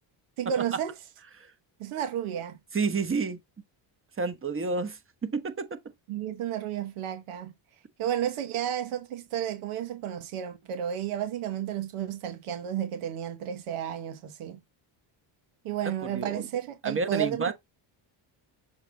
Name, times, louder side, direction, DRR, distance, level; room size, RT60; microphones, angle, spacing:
voice 1, 0.4-0.9 1.8-2.6 6.1-7.5 8.0-14.6 15.6-17.5, right 10 dB, 80° right, 1.4 m, -32 dB
voice 2, 2.7-3.4 4.2-5.8 15.8-16.4 16.8-17.5, right 4 dB, 25° right, 1.2 m, -30 dB
7.0 x 4.2 x 3.4 m
cardioid pair, 100°, 50 cm